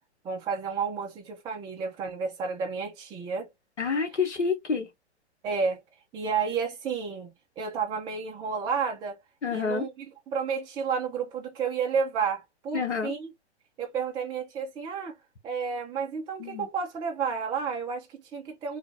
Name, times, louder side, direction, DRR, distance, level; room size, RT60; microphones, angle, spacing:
voice 1, 0.2-3.5 5.4-5.8 6.1-7.3 7.6-9.2 9.5-13.3 13.8-15.2 15.4-18.8, right 6 dB, 15° right, 0.5 m, -31 dB
voice 2, 3.8-4.9 9.4-9.8 12.7-13.1 16.4-16.7, left 5 dB, 85° left, 1.1 m, -28 dB
3.1 x 2.4 x 2.7 m
hypercardioid pair, 120°, 34 cm